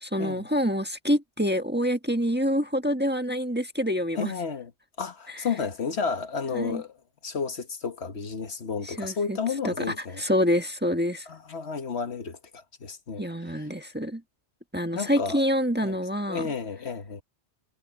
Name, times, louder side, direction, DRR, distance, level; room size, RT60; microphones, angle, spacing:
voice 1, 0.0-4.3 5.3-5.4 6.5-6.8 8.8-9.4 9.6-11.3 13.2-14.2 14.7-16.4, equal, 10° right, 1.5 m, -27 dB
voice 2, 4.1-4.7 5.0-7.0 7.2-10.2 11.3-13.2 14.9-15.4 15.8-16.0 16.3-17.2, left 5 dB, 65° left, 1.5 m, -32 dB
omnidirectional pair, 1.2 m